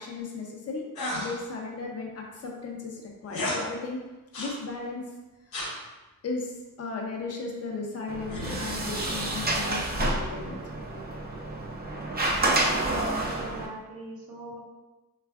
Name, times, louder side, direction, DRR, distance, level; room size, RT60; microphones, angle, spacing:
voice 1, 0.0-4.0 4.4-5.0 5.5-5.6 6.2-10.6, left 3 dB, 45° left, 0 dB, 0.6 m, -36 dB
sound 1, 0.9-1.4 3.3-3.6 4.3-4.6 5.5-5.8 8.3-8.9, left 1 dB, 85° left, 0.7 m, -33 dB
Sliding door, 8.1-13.7, right 2 dB, 30° right, 0.4 m, -29 dB
voice 2, 12.7-14.6, right 2 dB, 75° right, -3 dB, 0.8 m, -40 dB
3.2 x 2.3 x 2.3 m, 1.1 s
cardioid pair, 60°, 35 cm